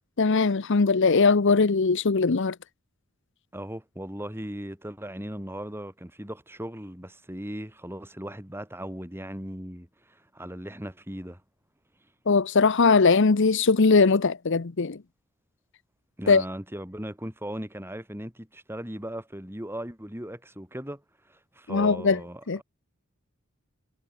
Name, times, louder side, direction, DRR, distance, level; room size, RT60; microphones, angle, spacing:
voice 1, 0.2-2.6 12.3-15.0 16.3-16.4 21.7-22.2 22.5-22.6, left 4 dB, 60° left, 0.8 m, -20 dB
voice 2, 3.5-11.4 16.2-21.0 21.3-22.6, equal, 10° right, 5.9 m, -38 dB
head